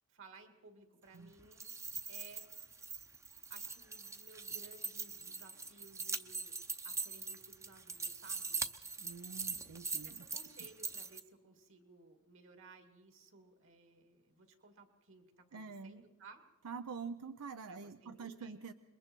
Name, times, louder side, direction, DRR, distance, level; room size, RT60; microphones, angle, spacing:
voice 1, 0.1-1.7 2.1-2.5 3.5-8.6 9.6-9.7 10.0-16.4 17.7-18.5, right 3 dB, 60° right, 6 dB, 2.2 m, -59 dB
sound 1, 1.4-11.2, right 4 dB, 15° right, 0.7 m, -42 dB
voice 2, 9.0-10.3 15.5-16.0 16.6-18.7, right 5 dB, 90° right, 10 dB, 0.6 m, -46 dB
27.0 x 22.0 x 4.5 m, 1.1 s
head